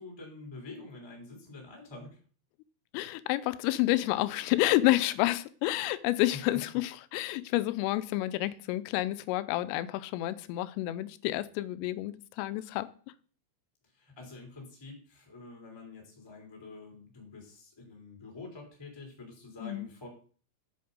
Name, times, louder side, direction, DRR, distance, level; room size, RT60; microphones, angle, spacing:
voice 1, 0.0-2.2 13.9-20.1, left 3 dB, 10° left, 1.7 m, -47 dB
voice 2, 2.9-12.9 19.6-19.9, left 16 dB, 90° left, 3.2 m, -29 dB
7.9 x 7.5 x 5.2 m
omnidirectional pair, 5.7 m